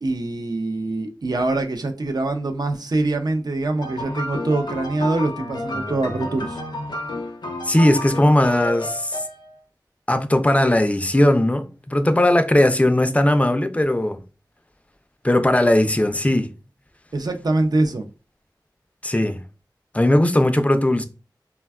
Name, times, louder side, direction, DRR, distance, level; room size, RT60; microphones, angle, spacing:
voice 1, 0.0-6.6 17.1-18.1, right 2 dB, 60° right, 0.4 m, -24 dB
sound 1, 3.8-9.6, left 1 dB, 75° left, 0.5 m, -31 dB
voice 2, 7.6-9.2 10.1-14.2 15.2-16.5 19.0-19.4 19.9-21.1, left 1 dB, 20° left, 0.3 m, -18 dB
3.3 x 2.2 x 2.2 m
wide cardioid pair, 65°, 8 cm